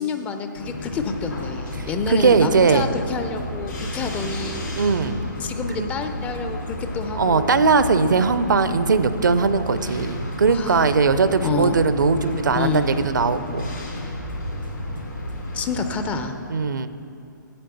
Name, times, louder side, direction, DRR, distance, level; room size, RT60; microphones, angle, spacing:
voice 1, 0.0-4.7 5.4-7.5 10.4-11.0 11.4-11.8 12.6-12.9 15.5-16.3, left 5 dB, 15° left, 7 dB, 0.4 m, -28 dB
sound 1, 0.5-16.2, left 2 dB, 70° left, 2.7 m, -34 dB
sound 2, 0.9-15.7, equal, 90° left, 2.1 m, -35 dB
voice 2, 1.8-2.9 4.8-5.2 5.8-5.9 7.2-13.8 16.5-16.9, right 4 dB, 65° right, 12 dB, 0.5 m, -20 dB
8.5 x 7.5 x 6.8 m, 2.6 s
figure-of-eight pair, 125°, 11 cm